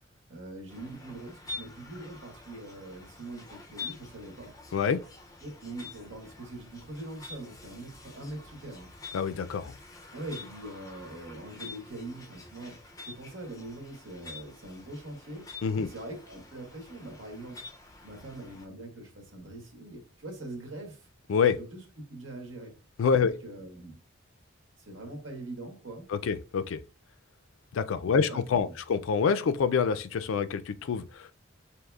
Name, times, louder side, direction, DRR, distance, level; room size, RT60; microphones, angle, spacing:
voice 1, 0.3-4.5 5.4-8.9 10.1-12.8 13.1-15.5 15.8-17.6 18.0-21.1 21.6-21.8 22.1-22.7 23.2-24.0 24.8-26.1 28.1-28.7, right 2 dB, 75° right, 1.3 m, -42 dB
sound 1, 0.7-18.7, left 4 dB, 15° left, 0.4 m, -47 dB
voice 2, 9.1-9.7 15.6-15.9 21.3-21.6 23.0-23.3 26.1-26.8 27.7-31.3, left 6 dB, 80° left, 0.4 m, -26 dB
6.2 x 2.8 x 2.3 m
head